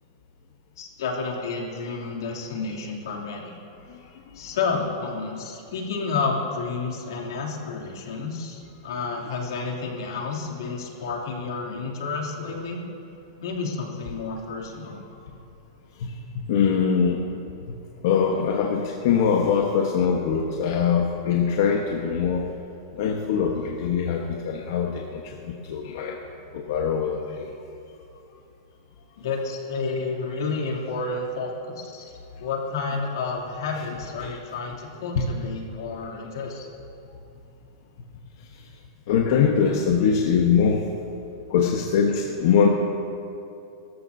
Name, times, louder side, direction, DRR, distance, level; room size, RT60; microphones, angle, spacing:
voice 1, 0.8-3.6 4.3-12.8 13.4-15.0 29.2-32.1 32.4-36.7, left 4 dB, 85° left, -2 dB, 2.9 m, -30 dB
voice 2, 16.0-17.2 18.0-22.5 23.0-26.2 26.5-27.5 34.2-34.4 35.1-35.3 39.1-40.9 41.5-42.7, left 6 dB, 55° left, 0 dB, 1.2 m, -22 dB
24.0 x 14.0 x 2.8 m, 2.7 s
supercardioid pair, 165°, 2 cm